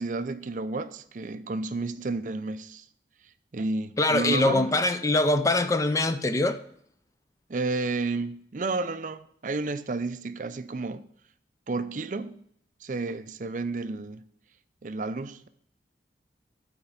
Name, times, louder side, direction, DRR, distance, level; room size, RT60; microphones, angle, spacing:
voice 1, 0.0-2.9 3.5-4.8 7.5-11.1 11.7-12.4 12.8-14.2 14.8-15.5, right 3 dB, 45° right, 0.5 m, -31 dB
voice 2, 4.0-6.6, left 2 dB, 20° left, 0.4 m, -23 dB
8.9 x 4.4 x 7.1 m
head